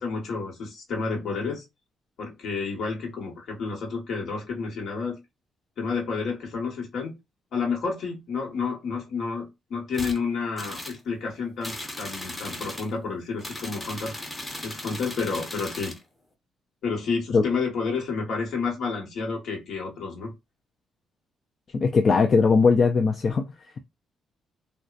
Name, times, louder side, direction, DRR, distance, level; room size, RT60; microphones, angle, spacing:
voice 1, 0.0-1.6 2.2-5.2 5.8-7.1 7.5-14.1 14.6-15.9 16.8-20.3, left 4 dB, 70° left, 1.3 m, -30 dB
sound 1, 9.9-10.2 10.6-11.0 11.6-12.9 13.4-16.0, left 1 dB, 15° left, 0.8 m, -37 dB
voice 2, 21.7-23.4, left 4 dB, 45° left, 0.4 m, -19 dB
2.7 x 2.2 x 2.4 m
cardioid pair, 90°, 0 cm